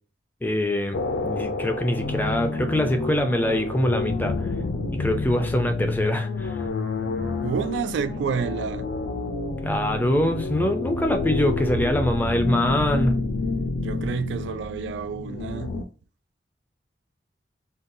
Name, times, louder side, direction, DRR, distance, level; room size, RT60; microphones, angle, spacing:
voice 1, 0.4-4.5 4.9-6.5 9.6-13.1, left 1 dB, 10° left, 0.3 m, -24 dB
sound 1, 0.9-15.8, left 3 dB, 70° left, 0.5 m, -29 dB
voice 2, 7.4-8.9 13.8-15.8, right 6 dB, 80° right, 0.3 m, -29 dB
3.8 x 2.2 x 2.6 m
head